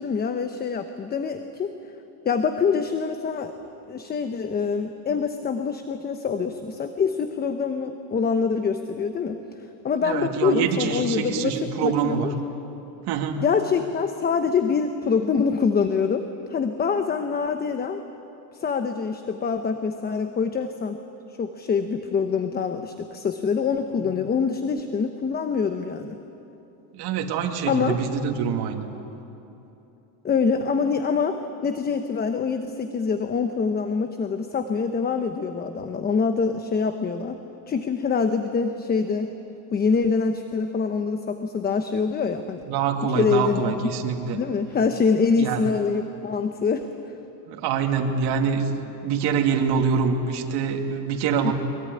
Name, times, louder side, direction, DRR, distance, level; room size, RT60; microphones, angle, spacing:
voice 1, 0.0-1.7 2.2-3.5 3.9-9.4 9.8-12.3 13.4-18.0 18.6-21.0 21.4-26.2 27.7-28.0 30.2-37.4 37.7-39.3 39.7-42.6 43.1-43.9 44.3-46.9 51.4-51.5, left 5 dB, 20° left, 8 dB, 0.9 m, -25 dB
voice 2, 10.0-12.3 13.1-13.4 24.0-24.1 26.9-28.9 42.6-44.4 45.4-45.6 47.5-48.8 49.0-51.5, right 6 dB, 55° right, 2 dB, 2.6 m, -25 dB
23.0 x 23.0 x 9.8 m, 2.9 s
cardioid pair, 150°, 46 cm